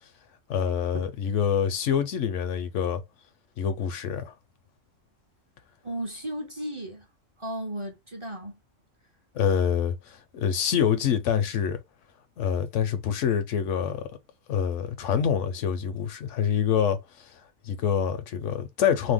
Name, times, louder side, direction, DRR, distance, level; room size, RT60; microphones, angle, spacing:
voice 1, 0.5-3.0 3.6-4.3 9.3-11.8 12.4-14.1 14.5-17.0 17.6-19.1, left 8 dB, 75° left, 1.0 m, -26 dB
voice 2, 5.8-7.0 7.4-8.6, right 1 dB, 30° right, 0.6 m, -35 dB
2.8 x 2.1 x 3.5 m
omnidirectional pair, 1.3 m